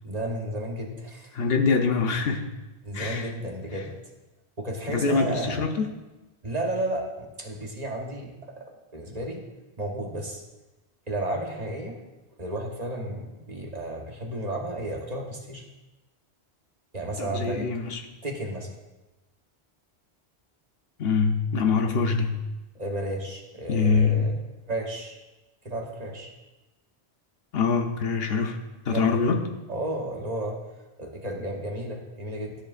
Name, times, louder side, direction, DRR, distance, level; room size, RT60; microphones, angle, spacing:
voice 1, 0.0-1.4 2.8-3.9 4.6-5.7 6.4-8.6 8.9-9.4 9.8-10.4 11.1-12.0 12.4-15.7 16.9-17.6 18.2-18.7 22.7-24.3 24.7-25.2 25.6-26.3 28.8-29.2 29.7-30.6 31.0-32.5, right 1 dB, 40° right, 1 dB, 1.1 m, -33 dB
voice 2, 1.3-2.5 2.9-3.3 3.7-3.8 4.9-5.9 17.2-18.0 21.0-22.4 23.7-24.3 27.5-28.6 28.8-29.4, left 5 dB, 65° left, 5 dB, 0.9 m, -24 dB
12.5 x 7.3 x 2.5 m, 1.1 s
omnidirectional pair, 1.1 m